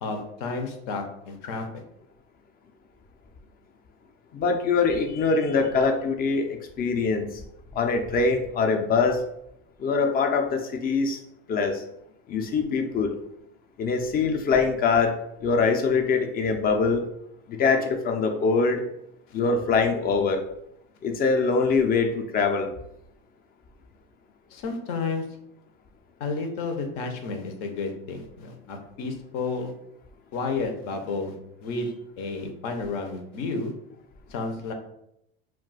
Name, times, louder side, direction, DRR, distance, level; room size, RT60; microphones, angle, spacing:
voice 1, 0.0-1.8 24.5-25.3 26.2-29.7 30.3-31.3 31.6-33.7 34.3-34.7, left 4 dB, 65° left, 4 dB, 0.7 m, -31 dB
voice 2, 4.3-7.4 7.7-9.2 9.8-11.2 11.5-11.8 12.3-13.1 13.8-17.0 17.5-18.8 19.3-20.4 21.0-22.7, left 4 dB, 30° left, 5 dB, 0.5 m, -23 dB
2.3 x 2.2 x 3.9 m, 0.79 s
supercardioid pair, 105°, 29 cm